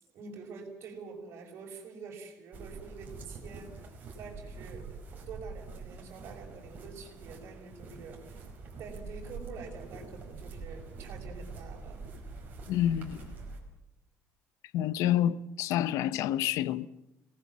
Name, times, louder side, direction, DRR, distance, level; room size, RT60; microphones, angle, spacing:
voice 1, 0.0-3.8 4.1-8.4 8.8-12.0, right 4 dB, 50° right, 5.8 m, -46 dB
sound 1, 2.5-13.6, right 4 dB, 30° right, 5.0 m, -45 dB
voice 2, 12.7-13.3 14.7-16.9, left 11 dB, 75° left, 0.9 m, -28 dB
26.5 x 19.5 x 7.5 m
cardioid pair, 175°, 5 cm